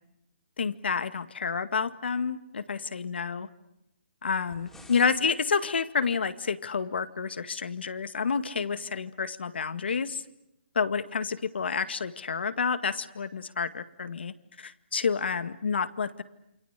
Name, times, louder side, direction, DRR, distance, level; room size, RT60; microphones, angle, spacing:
voice 1, 0.6-3.5 4.2-10.2 10.8-16.2, left 5 dB, 75° left, 12 dB, 2.0 m, -29 dB
sound 1, 4.3-5.3, left 2 dB, 5° left, 3.4 m, -51 dB
28.5 x 24.5 x 8.3 m, 0.85 s
hypercardioid pair, 155°, 6 cm